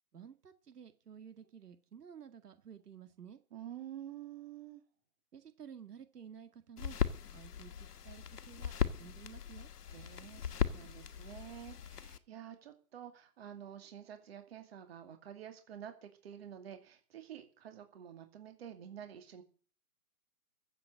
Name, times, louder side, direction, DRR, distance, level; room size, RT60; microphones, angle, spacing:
voice 1, 0.1-3.4 5.3-7.0 7.3-9.7, right 8 dB, 85° right, 9 dB, 2.1 m, -53 dB
voice 2, 3.5-4.8 9.9-19.4, right 10 dB, 40° right, 7 dB, 2.4 m, -49 dB
sound 1, 6.8-12.2, left 8 dB, 80° left, 1.4 m, -38 dB
14.5 x 7.7 x 7.6 m, 0.42 s
hypercardioid pair, 165°, 46 cm